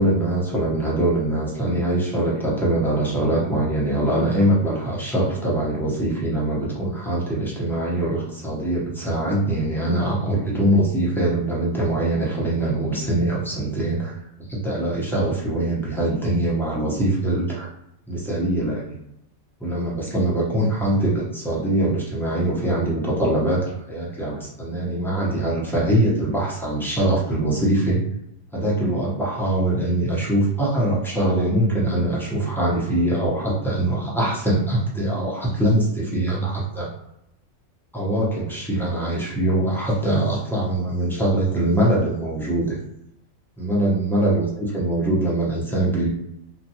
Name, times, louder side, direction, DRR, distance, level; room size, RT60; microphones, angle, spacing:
voice 1, 0.0-14.1 14.5-17.7 18.1-19.0 19.6-28.0 28.5-36.9 37.9-42.8 43.6-46.1, right 1 dB, 5° left, -6 dB, 0.5 m, -23 dB
2.6 x 2.2 x 2.7 m, 0.79 s
omnidirectional pair, 1.4 m